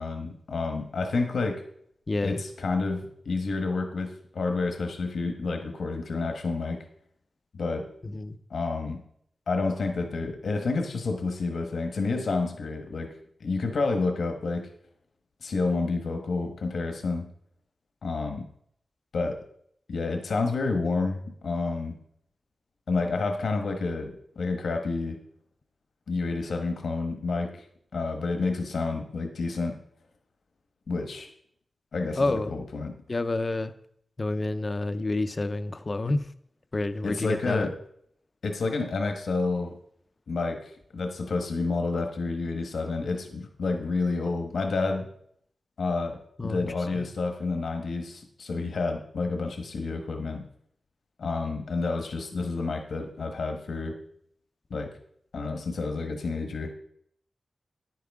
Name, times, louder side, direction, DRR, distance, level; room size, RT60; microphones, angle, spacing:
voice 1, 0.0-1.6 2.2-6.8 7.5-7.9 8.5-9.0 9.5-13.1 13.4-14.7 15.4-17.3 18.0-18.4 19.1-19.4 19.9-22.0 22.9-25.2 26.1-27.6 27.9-29.8 30.9-31.3 31.9-32.9 37.0-37.8 38.4-39.7 40.3-45.1 45.8-50.4 51.2-53.9 54.7-54.9 55.3-56.7, left 3 dB, 85° left, 4 dB, 1.3 m, -29 dB
voice 2, 2.1-2.4 8.0-8.4 32.2-32.5 33.1-33.7 34.2-36.3 36.7-37.7 46.4-47.1, left 2 dB, 35° left, 11 dB, 0.6 m, -29 dB
10.0 x 9.5 x 3.6 m, 0.67 s
wide cardioid pair, 90°, 0 cm